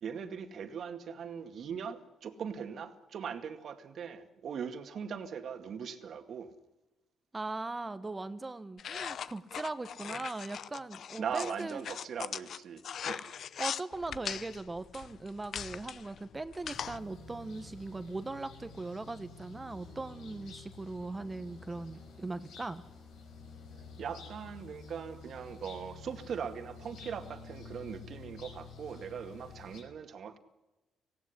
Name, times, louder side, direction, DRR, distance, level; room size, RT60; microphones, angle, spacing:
voice 1, 0.0-6.5 11.2-13.2 24.0-30.4, right 7 dB, 60° right, 8 dB, 2.1 m, -40 dB
voice 2, 7.3-11.8 13.0-22.8, right 2 dB, 20° right, 12 dB, 1.2 m, -40 dB
sound 1, 8.8-17.0, left 8 dB, 60° left, 0.7 m, -40 dB
sound 2, 16.6-29.8, left 4 dB, 85° left, 5.0 m, -50 dB
18.5 x 16.5 x 9.9 m, 1.0 s
cardioid pair, 90°, 0 cm